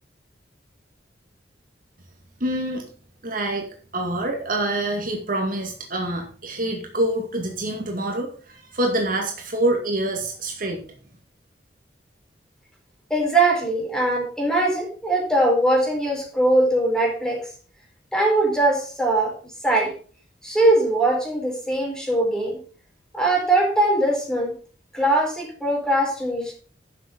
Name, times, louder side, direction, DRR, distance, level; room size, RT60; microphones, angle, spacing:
voice 1, 2.4-2.8 3.2-3.6 3.9-10.8, right 1 dB, 50° right, 2 dB, 2.1 m, -26 dB
voice 2, 13.1-17.4 18.1-19.3 19.6-19.9 20.4-22.6 23.1-24.5 24.9-26.5, right 1 dB, 5° left, -1 dB, 4.5 m, -21 dB
11.5 x 7.3 x 5.3 m, 0.42 s
head